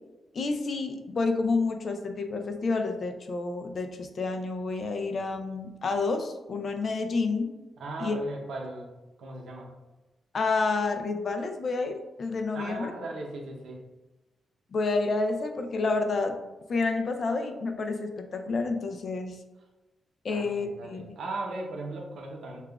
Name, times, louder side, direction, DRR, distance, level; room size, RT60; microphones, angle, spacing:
voice 1, 0.3-7.5 8.0-8.2 10.3-12.9 14.7-16.4 16.7-19.4 20.2-21.1, left 3 dB, 55° left, 5 dB, 0.4 m, -29 dB
voice 2, 7.8-8.9 9.2-9.7 12.5-13.8 20.3-22.6, right 2 dB, 80° right, 0 dB, 0.7 m, -38 dB
6.6 x 2.4 x 2.3 m, 1.1 s
cardioid pair, 90°, 0 cm